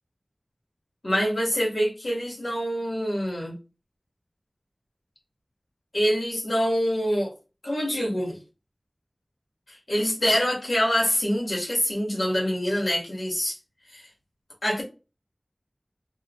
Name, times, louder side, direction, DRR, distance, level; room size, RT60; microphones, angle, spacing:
voice 1, 1.0-3.6 5.9-7.3 7.6-8.4 9.9-13.6 13.9-14.1 14.6-14.8, equal, 80° left, 1.6 m, -25 dB
3.2 x 2.7 x 2.4 m
wide cardioid pair, 50°, 0 cm